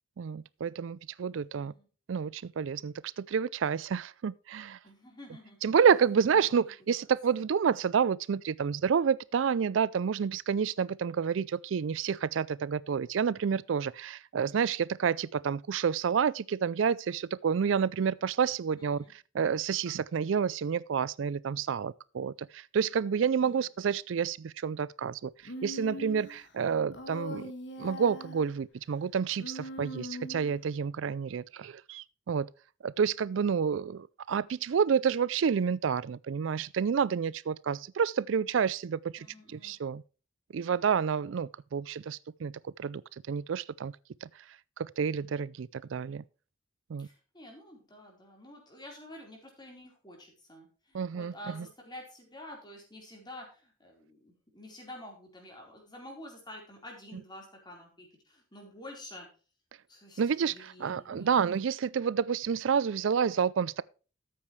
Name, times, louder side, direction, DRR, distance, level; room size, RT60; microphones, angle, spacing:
voice 1, 0.2-1.7 2.1-4.8 5.6-27.5 27.8-32.5 32.8-40.0 40.5-43.9 44.2-46.2 46.9-47.1 50.9-51.7 60.2-63.8, right 7 dB, 75° right, 0.4 m, -29 dB
voice 2, 4.8-5.8 6.5-6.6 19.0-19.1 23.4-23.7 39.2-39.8 47.0-59.3 59.9-60.2 60.5-61.4, left 1 dB, 20° left, 4.3 m, -49 dB
Human voice, 25.5-26.4 26.9-28.5 29.4-30.6, left 1 dB, 60° left, 1.9 m, -41 dB
13.0 x 8.7 x 3.2 m
head